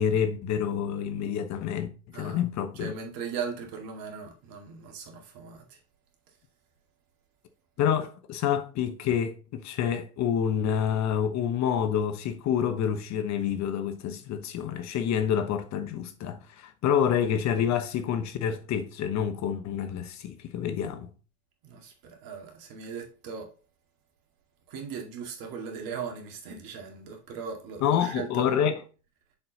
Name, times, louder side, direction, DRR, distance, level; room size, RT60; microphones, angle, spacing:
voice 1, 0.0-2.9 7.8-21.1 27.8-28.8, left 8 dB, 40° left, 1.0 m, -28 dB
voice 2, 2.8-5.6 21.6-23.5 24.7-28.5, right 6 dB, 55° right, 2.2 m, -38 dB
6.8 x 4.4 x 4.0 m
hypercardioid pair, 90°, 42 cm